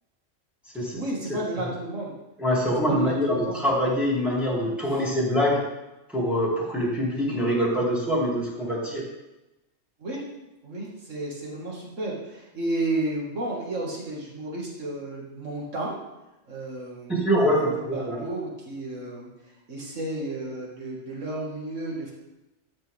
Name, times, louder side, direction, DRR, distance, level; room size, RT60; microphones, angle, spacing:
voice 1, 0.9-2.1 2.9-3.6 10.0-10.2 10.6-16.0 16.5-19.3 19.7-22.1, right 2 dB, 75° right, -4 dB, 2.6 m, -32 dB
voice 2, 2.4-5.6 6.1-9.0 17.1-18.2, equal, ahead, -7 dB, 2.9 m, -24 dB
13.5 x 7.3 x 3.7 m, 1.0 s
omnidirectional pair, 1.3 m